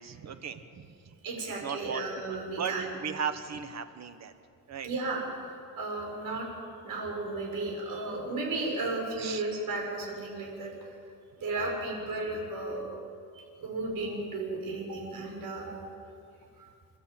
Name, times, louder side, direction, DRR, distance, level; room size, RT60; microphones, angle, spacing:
voice 1, 0.0-1.1 1.6-2.7 3.0-4.3 4.7-4.9 9.2-9.4, right 7 dB, 45° right, 9 dB, 1.4 m, -37 dB
voice 2, 1.2-2.9 4.8-5.2 5.8-6.5 6.8-10.7 11.4-12.8 13.3-15.8 16.6-16.7, right 2 dB, 65° right, -1 dB, 7.1 m, -34 dB
29.0 x 13.0 x 9.0 m, 2.4 s
cardioid pair, 150°, 37 cm